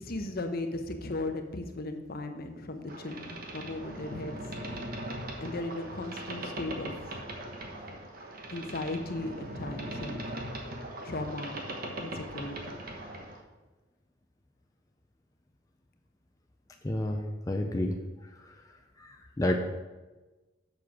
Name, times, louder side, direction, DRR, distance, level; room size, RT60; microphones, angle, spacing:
voice 1, 0.0-4.4 5.4-7.2 8.5-10.3 11.0-11.6 12.0-12.8, left 2 dB, 50° left, 7 dB, 0.9 m, -37 dB
Boat Water vehicle, 2.9-13.4, right 1 dB, 45° right, 1.2 m, -40 dB
voice 2, 16.8-17.2 17.5-18.0 19.0-19.1 19.4-19.5, left 1 dB, 20° left, 2 dB, 0.5 m, -28 dB
7.4 x 6.5 x 5.9 m, 1.2 s
head